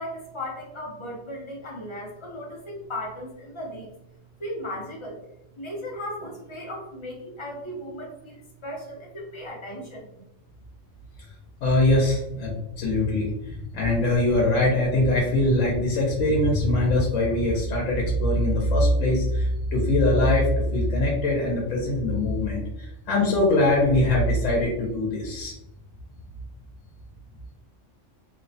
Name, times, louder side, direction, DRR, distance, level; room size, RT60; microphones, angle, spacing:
voice 1, 0.0-3.9 4.4-5.2 5.6-10.1, left 1 dB, 35° left, -2 dB, 0.5 m, -36 dB
voice 2, 11.6-25.5, left 1 dB, 90° left, -3 dB, 1.0 m, -22 dB
2.8 x 2.0 x 2.6 m, 0.85 s
omnidirectional pair, 1.3 m